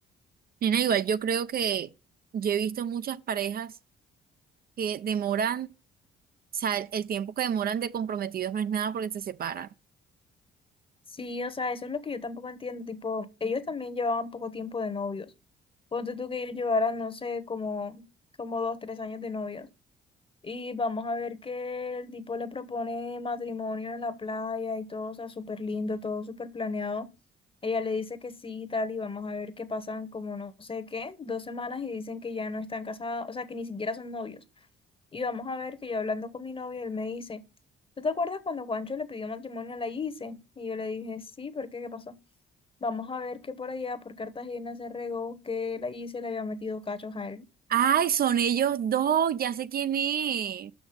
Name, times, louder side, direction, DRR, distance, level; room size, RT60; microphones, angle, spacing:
voice 1, 0.6-1.9 2.3-3.7 4.8-5.7 6.5-9.7 47.7-50.7, right 8 dB, 50° right, 0.4 m, -27 dB
voice 2, 11.1-15.3 15.9-18.0 18.4-19.7 20.4-27.1 27.6-34.4 35.1-37.4 38.0-42.2 42.8-47.4, left 4 dB, 25° left, 1.0 m, -33 dB
6.1 x 6.0 x 5.1 m
cardioid pair, 90°, 20 cm